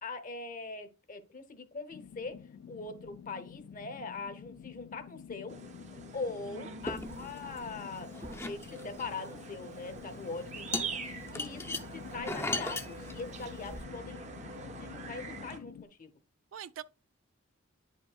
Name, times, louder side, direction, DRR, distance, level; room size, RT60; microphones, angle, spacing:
voice 1, 0.0-2.4 2.7-5.6 6.1-16.1, left 4 dB, 45° left, 0.7 m, -42 dB
sound 1, 1.9-15.9, left 7 dB, 75° left, 0.3 m, -49 dB
sound 2, 5.5-15.6, right 4 dB, 35° right, 0.6 m, -45 dB
voice 2, 6.5-7.2 16.5-16.8, right 8 dB, 75° right, 0.3 m, -45 dB
sound 3, 6.8-7.8 8.1-9.2 10.0-10.2 10.7-13.8, left 2 dB, 15° left, 0.5 m, -37 dB
9.2 x 5.2 x 2.3 m
head